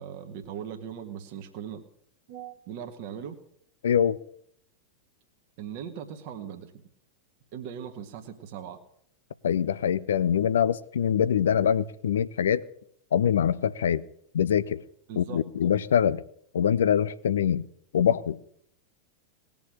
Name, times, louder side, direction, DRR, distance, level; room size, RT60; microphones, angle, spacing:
voice 1, 0.0-1.8 2.3-3.4 5.6-6.7 7.5-8.8 15.1-15.4, right 8 dB, 45° right, 1.7 m, -39 dB
voice 2, 3.8-4.2 9.4-12.6 13.1-14.0 14.3-14.8 15.2-16.2 16.5-17.6 17.9-18.4, left 8 dB, 65° left, 0.7 m, -24 dB
19.0 x 7.1 x 9.8 m
figure-of-eight pair, 90°, 0 cm